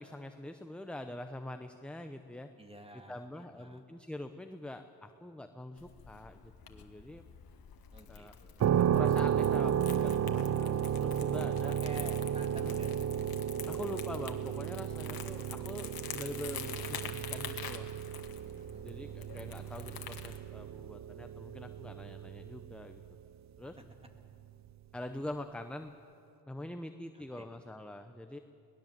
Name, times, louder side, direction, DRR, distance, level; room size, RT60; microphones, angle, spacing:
voice 1, 0.0-2.5 3.1-7.2 8.1-8.3 8.8-11.8 12.6-12.8 13.7-17.9 18.8-23.0 23.6-23.8 24.9-25.9 26.5-28.4, left 1 dB, 5° left, 7 dB, 0.7 m, -44 dB
voice 2, 2.6-3.8 7.9-8.8 11.8-13.1 15.5-16.0 18.6-18.9 19.2-19.4 27.1-27.5, right 1 dB, 15° right, 4 dB, 2.3 m, -51 dB
Crumpling crinkling, 5.8-20.4, left 7 dB, 55° left, 1.7 m, -47 dB
sound 1, 8.6-23.3, right 9 dB, 40° right, 0.5 m, -33 dB
21.5 x 18.5 x 7.5 m, 2.7 s
cardioid pair, 100°, 42 cm